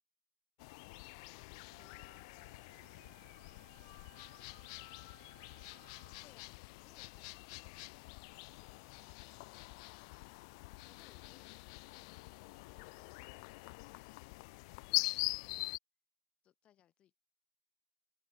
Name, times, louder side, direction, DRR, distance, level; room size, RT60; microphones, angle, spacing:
sound 1, 0.6-15.8, left 27 dB, 40° left, 0.3 m, -44 dB
voice 1, 1.0-1.4 1.7-6.2, right 12 dB, 65° right, 4.5 m, -74 dB
Wind instrument woodwind instrument, 2.0-6.4, right 8 dB, 80° right, 2.7 m, -66 dB
voice 2, 6.2-10.6 10.9-15.6 16.4-17.2, left 11 dB, 20° left, 2.0 m, -71 dB
sound 2, 8.3-13.5, left 1 dB, ahead, 3.1 m, -74 dB
hypercardioid pair, 145°, 5 cm